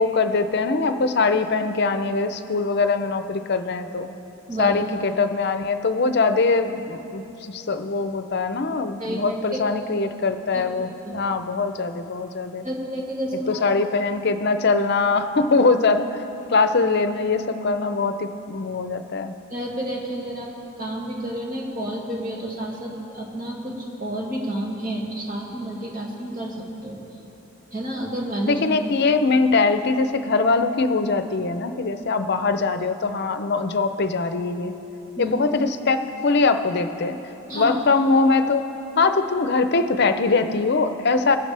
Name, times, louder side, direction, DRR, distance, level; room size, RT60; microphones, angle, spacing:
voice 1, 0.0-4.1 4.6-12.6 13.5-16.2 16.5-19.4 28.5-34.7 35.2-37.2 37.5-38.6 39.0-41.4, left 3 dB, 55° left, 9 dB, 0.6 m, -22 dB
voice 2, 9.0-9.6 10.5-10.6 11.0-11.2 12.6-13.6 19.5-20.5 20.8-27.0 27.7-28.6 35.2-35.3 37.5-37.8, right 1 dB, 40° right, -3 dB, 2.3 m, -30 dB
21.5 x 9.5 x 3.4 m, 3.0 s
head